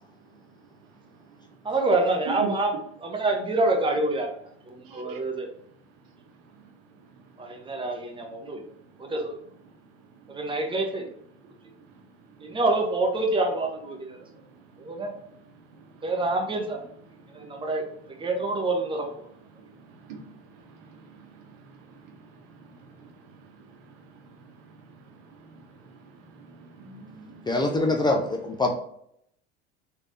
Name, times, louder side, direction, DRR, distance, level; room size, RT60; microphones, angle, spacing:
voice 1, 1.6-2.7 3.0-4.3 4.7-5.5 7.4-8.6 9.1-9.4 10.3-11.0 12.4-14.2 14.8-15.1 16.0-16.8 17.3-17.8 18.2-19.1, right 2 dB, 15° right, 2 dB, 0.9 m, -26 dB
voice 2, 4.8-5.2 20.1-20.2 20.9-21.4 21.7-21.8 22.6-22.8 24.2-24.3 26.4-27.5, right 6 dB, 70° right, 3 dB, 1.0 m, -40 dB
voice 3, 27.5-28.8, left 2 dB, 15° left, 2 dB, 0.5 m, -24 dB
3.4 x 3.3 x 2.7 m, 0.70 s
supercardioid pair, 95°, 31 cm